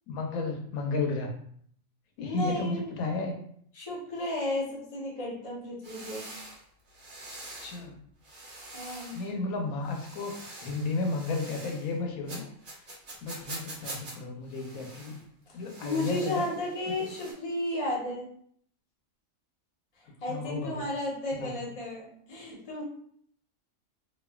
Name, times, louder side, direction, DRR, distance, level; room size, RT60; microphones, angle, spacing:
voice 1, 0.1-1.3 2.2-3.3 7.6-7.9 9.1-12.5 13.2-15.2 15.5-16.5 17.0-17.1 20.3-20.8 21.4-21.6, left 3 dB, 85° left, 2 dB, 1.1 m, -33 dB
voice 2, 2.2-2.9 3.7-6.3 8.7-9.2 15.5-18.3 20.2-22.8, left 1 dB, 30° left, -4 dB, 0.7 m, -33 dB
sound 1, 5.8-7.8 8.2-9.3 9.8-12.0 12.3-14.2 14.5-15.2 15.6-17.3, right 2 dB, 45° right, 0.8 m, -45 dB
3.1 x 2.4 x 2.2 m, 0.63 s
omnidirectional pair, 1.4 m